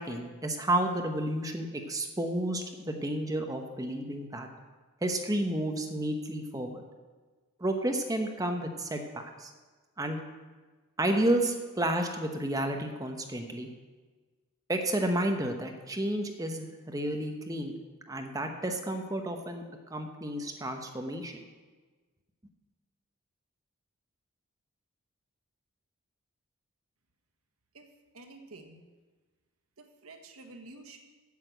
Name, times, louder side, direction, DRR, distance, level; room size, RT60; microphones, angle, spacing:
voice 1, 0.0-4.5 5.0-6.8 7.6-9.5 10.0-10.2 11.0-13.7 14.7-17.7 18.1-19.6 19.9-21.4, right 1 dB, 15° right, 4 dB, 0.9 m, -31 dB
voice 2, 28.1-28.8 29.8-31.0, right 2 dB, 85° right, 5 dB, 1.3 m, -49 dB
8.4 x 6.6 x 7.9 m, 1.4 s
head